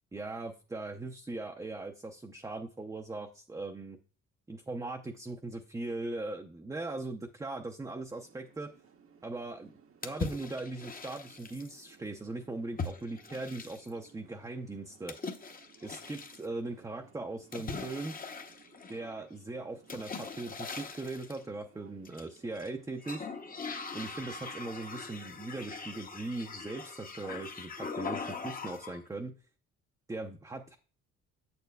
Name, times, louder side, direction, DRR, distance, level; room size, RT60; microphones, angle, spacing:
voice 1, 0.1-4.0 4.5-8.7 9.2-9.7 10.0-15.1 15.8-18.1 18.9-23.3 23.9-29.3 30.1-30.8, right 2 dB, 10° right, 3 dB, 0.5 m, -39 dB
sound 1, 8.1-25.9, right 6 dB, 45° right, 0.8 m, -61 dB
sound 2, 10.0-11.8 12.8-14.1 15.1-16.5 17.5-19.2 19.9-21.4 22.0-22.7 23.0-29.0, left 4 dB, 30° left, 0.7 m, -41 dB
7.2 x 6.8 x 2.3 m, 0.39 s
cardioid pair, 90°, 30 cm